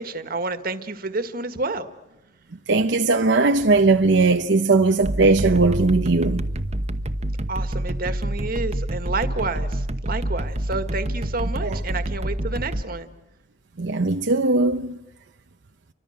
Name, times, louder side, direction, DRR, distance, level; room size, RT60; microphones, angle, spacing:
voice 1, 0.0-1.9 7.5-13.1, right 3 dB, 55° right, 1.8 m, -29 dB
voice 2, 2.7-6.4 11.6-11.8 13.8-15.0, right 3 dB, 80° right, 0.8 m, -19 dB
sound 1, 5.0-12.8, right 1 dB, 40° right, 1.0 m, -27 dB
30.0 x 25.0 x 6.6 m
head